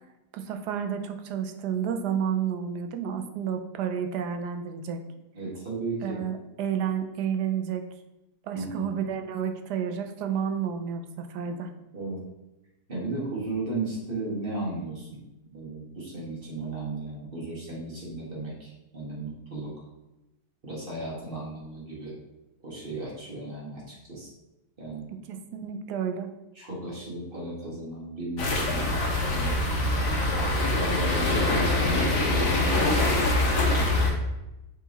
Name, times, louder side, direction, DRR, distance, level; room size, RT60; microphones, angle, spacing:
voice 1, 0.3-5.0 6.0-7.8 8.4-11.7 25.3-26.3, right 8 dB, 75° right, 6 dB, 1.2 m, -30 dB
voice 2, 5.3-6.2 8.5-8.9 11.9-12.2 12.9-15.2 15.5-19.7 20.6-22.1 22.6-24.3 24.8-25.1 26.6-29.1 29.3-29.6 30.6-32.6 33.7-34.1, right 2 dB, 35° right, -5 dB, 1.9 m, -35 dB
sound 1, 28.4-34.1, left 2 dB, 75° left, 1.8 m, -24 dB
6.4 x 3.9 x 4.0 m, 0.97 s
omnidirectional pair, 1.8 m